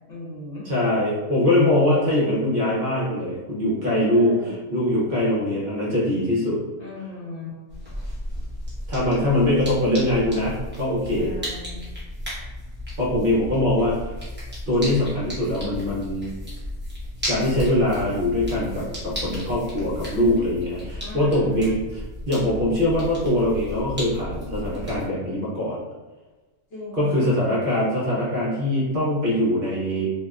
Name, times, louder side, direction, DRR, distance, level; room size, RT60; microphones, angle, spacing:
voice 1, 0.1-0.7 4.0-4.7 6.8-7.6 11.1-11.9 21.0-21.7 26.7-27.4, left 2 dB, 55° left, -6 dB, 0.7 m, -38 dB
voice 2, 0.7-6.6 8.9-11.3 13.0-14.1 14.7-16.3 17.2-25.8 27.0-30.0, left 1 dB, 50° right, -7 dB, 0.7 m, -22 dB
sound 1, 7.7-25.0, left 1 dB, 15° right, 0.3 m, -34 dB
2.7 x 2.0 x 2.3 m, 1.2 s
omnidirectional pair, 1.6 m